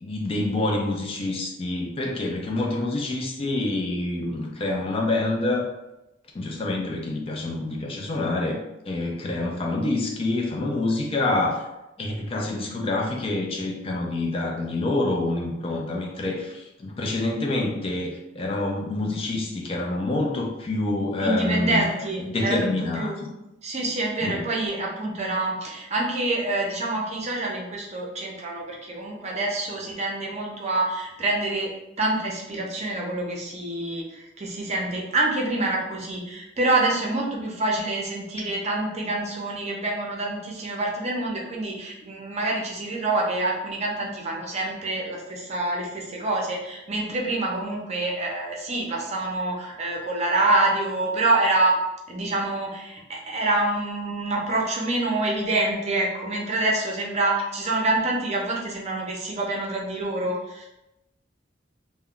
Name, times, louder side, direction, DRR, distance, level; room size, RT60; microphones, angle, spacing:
voice 1, 0.0-5.7 6.3-11.7 12.0-21.9 22.2-23.1 24.2-24.4, left 2 dB, 30° left, 0 dB, 0.3 m, -27 dB
voice 2, 21.2-23.2 23.6-31.7 32.0-51.8 52.1-60.7, right 2 dB, 35° right, -2 dB, 0.6 m, -26 dB
2.2 x 2.1 x 3.6 m, 0.91 s
head